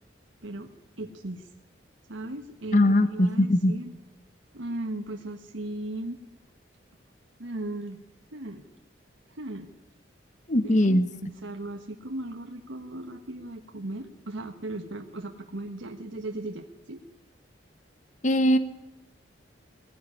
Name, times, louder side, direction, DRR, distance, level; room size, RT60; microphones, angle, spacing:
voice 1, 1.0-1.5 2.1-3.9 4.5-6.2 7.4-8.0 8.3-8.7 9.3-9.7 10.6-17.0, right 1 dB, 90° right, 4 dB, 1.4 m, -37 dB
voice 2, 2.7-3.7 10.5-11.1 18.2-18.6, left 1 dB, 40° left, 11 dB, 1.0 m, -21 dB
20.5 x 15.0 x 9.8 m, 0.99 s
head